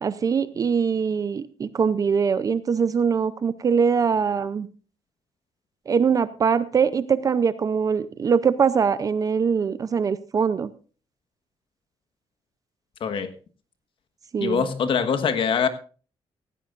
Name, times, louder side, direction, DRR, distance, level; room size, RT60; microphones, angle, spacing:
voice 1, 0.0-4.7 5.9-10.7 14.3-14.6, right 6 dB, 35° right, 14 dB, 0.5 m, -22 dB
voice 2, 13.0-13.3 14.4-15.7, left 6 dB, 60° left, 9 dB, 1.4 m, -23 dB
16.0 x 16.0 x 2.5 m, 0.38 s
wide cardioid pair, 160°, 10 cm